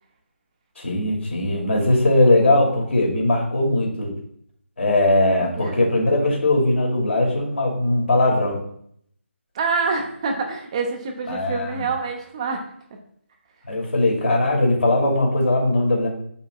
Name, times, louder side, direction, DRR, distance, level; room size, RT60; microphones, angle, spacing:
voice 1, 0.8-4.1 4.8-8.6 11.3-11.9 13.7-16.1, left 1 dB, 65° left, -1 dB, 2.6 m, -20 dB
voice 2, 5.4-5.8 9.5-12.6, right 4 dB, 30° right, 2 dB, 0.8 m, -26 dB
7.5 x 5.6 x 2.4 m, 0.68 s
figure-of-eight pair, 155°, 7 cm